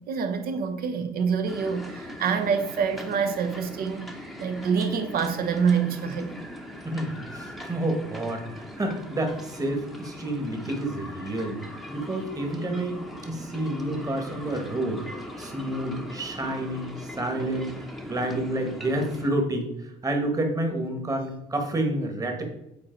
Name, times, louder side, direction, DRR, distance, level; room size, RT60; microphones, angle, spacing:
voice 1, 0.1-4.1 4.4-6.3, right 6 dB, 60° right, 7 dB, 1.0 m, -26 dB
sound 1, 1.5-19.3, equal, ahead, 0.9 m, -40 dB
voice 2, 6.8-11.6 11.9-17.7 18.0-22.4, right 1 dB, 20° right, 4 dB, 1.5 m, -29 dB
7.6 x 4.3 x 4.5 m, 0.84 s
cardioid pair, 110°, 17 cm